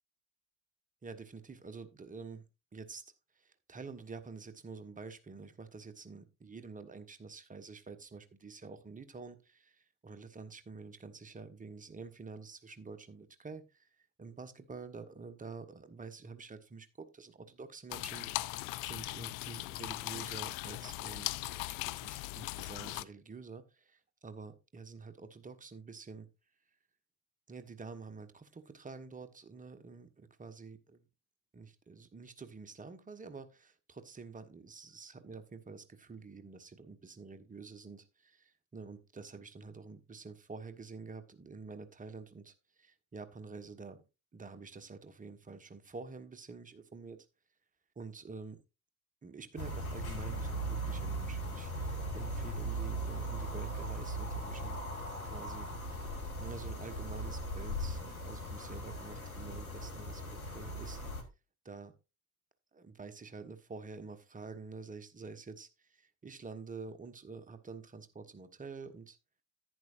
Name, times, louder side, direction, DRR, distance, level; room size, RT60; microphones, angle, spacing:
voice 1, 1.0-2.5 2.7-3.0 3.3-26.3 27.5-31.0 31.5-44.0 44.3-47.2 48.0-48.6 49.2-54.9 55.2-61.0 61.6-62.0 62.7-69.2, right 4 dB, 20° right, 10 dB, 1.2 m, -48 dB
sound 1, 17.9-23.0, left 20 dB, 50° left, 0.5 m, -39 dB
sound 2, 49.6-61.2, right 1 dB, 90° left, 1.4 m, -39 dB
10.5 x 9.8 x 2.5 m, 0.27 s
figure-of-eight pair, 60°, 41 cm